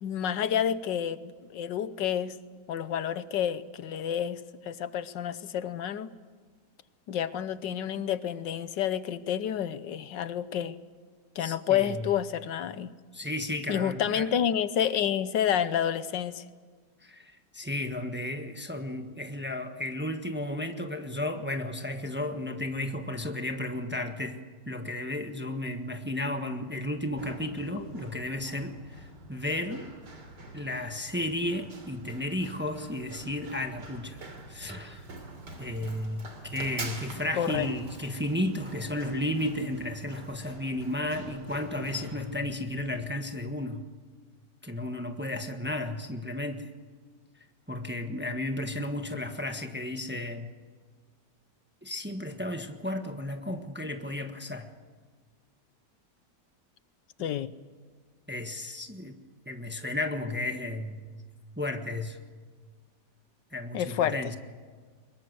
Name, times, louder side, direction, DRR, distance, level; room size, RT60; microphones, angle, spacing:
voice 1, 0.0-2.3 2.7-6.1 7.1-10.7 11.3-12.9 13.7-16.4 27.8-27.9 37.4-37.7 57.2-57.5 63.7-64.3, left 9 dB, 80° left, 14 dB, 1.6 m, -29 dB
voice 2, 11.4-12.1 13.1-14.3 17.0-24.4 24.7-29.9 30.5-34.2 34.5-35.0 35.6-43.8 44.6-46.7 47.7-50.5 51.8-54.7 58.3-59.1 59.4-61.1 61.6-62.2 63.5-64.4, left 1 dB, 5° right, 5 dB, 1.2 m, -33 dB
Run, 26.9-43.0, right 2 dB, 70° right, 3.8 m, -45 dB
24.0 x 21.5 x 8.0 m, 1.5 s
omnidirectional pair, 1.9 m